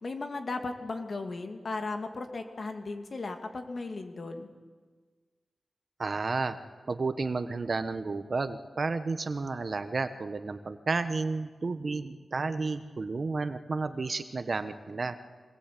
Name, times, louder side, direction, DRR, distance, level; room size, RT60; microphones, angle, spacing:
voice 1, 0.0-4.5, left 3 dB, 50° left, 5 dB, 2.5 m, -36 dB
voice 2, 6.0-6.6 6.9-15.2, right 3 dB, 50° right, 10 dB, 1.2 m, -32 dB
25.0 x 19.5 x 8.6 m, 1.5 s
wide cardioid pair, 110°, 0 cm